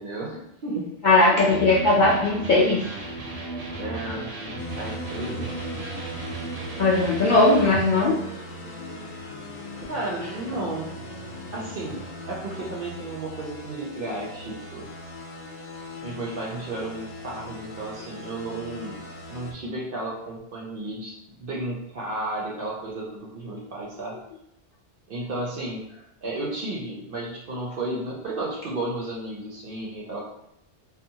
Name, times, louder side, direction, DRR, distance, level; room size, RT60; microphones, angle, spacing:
voice 1, 0.0-0.9 1.5-1.7 3.7-5.5 9.8-10.9 11.5-14.9 16.0-19.0 19.3-21.1 21.4-24.2 25.1-25.8 26.2-30.2, right 2 dB, 60° right, -3 dB, 0.6 m, -33 dB
voice 2, 1.0-2.8 3.4-3.6 6.8-8.2, left 2 dB, 60° left, -6 dB, 0.5 m, -19 dB
Electric guitar, 1.5-7.9, right 2 dB, 85° right, 0.9 m, -35 dB
sound 1, 4.6-19.5, equal, 80° left, 0.9 m, -39 dB
2.7 x 2.0 x 2.7 m, 0.78 s
omnidirectional pair, 1.2 m